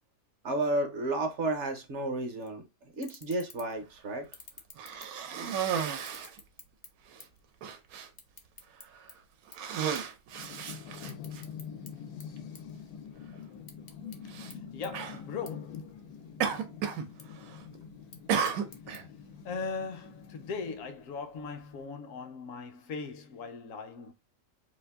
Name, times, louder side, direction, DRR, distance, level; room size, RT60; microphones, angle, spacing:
voice 1, 0.4-2.6 2.9-4.3, right 2 dB, 60° right, 0.9 m, -32 dB
sound 1, 2.4-2.5 2.9-3.8 4.2-5.5 5.9-7.5 7.7-9.1 9.5-9.7 9.9-10.1 10.5-11.9 12.2-13.2 13.5-14.2 14.5-14.6 14.8-14.9 15.5-15.6 15.9-16.5 16.9-17.2 17.9-19.0, left 4 dB, 50° left, 0.5 m, -51 dB
Cough, 4.8-6.4 7.1-7.2 7.6-8.1 8.8-9.1 9.5-11.4 12.4-12.5 14.3-14.5 14.9-15.2 16.4-17.1 17.4-17.8 18.3-19.0, right 7 dB, 80° right, 1.1 m, -33 dB
sound 2, 10.3-20.8, left 7 dB, 90° left, 1.1 m, -45 dB
voice 2, 14.4-16.0 19.4-24.1, left 4 dB, 70° left, 0.9 m, -39 dB
2.8 x 2.5 x 3.4 m
omnidirectional pair, 1.5 m